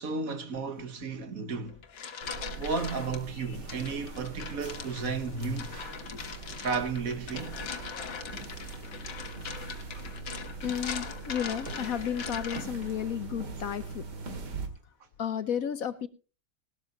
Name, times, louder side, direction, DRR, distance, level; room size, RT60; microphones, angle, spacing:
voice 1, 0.0-1.8 2.6-5.7 6.6-7.6 9.9-10.0, right 4 dB, 55° right, 1.6 m, -33 dB
voice 2, 0.5-0.9 1.2-1.5 3.3-3.6 6.0-6.2 10.6-14.1 15.2-16.1, left 9 dB, 60° left, 1.1 m, -33 dB
sound 1, 1.6-3.2 3.7-12.9, left 6 dB, 85° left, 2.1 m, -41 dB
sound 2, 2.2-14.7, right 3 dB, 80° right, 2.6 m, -42 dB
19.0 x 12.5 x 2.9 m
omnidirectional pair, 1.8 m